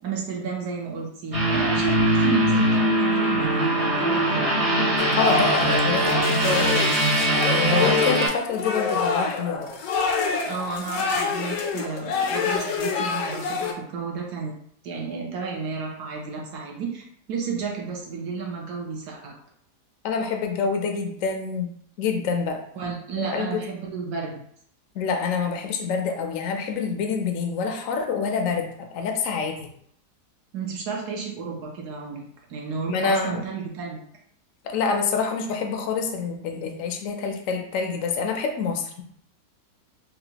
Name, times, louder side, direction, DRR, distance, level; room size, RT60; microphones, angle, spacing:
voice 1, 0.0-4.5 10.5-14.5 14.8-19.4 22.8-24.4 30.5-32.2 32.5-34.0, right 5 dB, 70° right, -1 dB, 1.3 m, -32 dB
sound 1, 1.3-8.3, right 1 dB, 45° right, 0.4 m, -21 dB
sound 2, 5.0-13.7, left 5 dB, 85° left, 1.2 m, -27 dB
voice 2, 5.2-7.0 7.6-9.8 20.0-21.7 22.0-22.6 23.2-23.6 24.9-29.7 32.9-33.5 34.6-39.0, left 5 dB, 70° left, 3 dB, 0.8 m, -27 dB
4.0 x 2.2 x 2.8 m, 0.65 s
omnidirectional pair, 1.8 m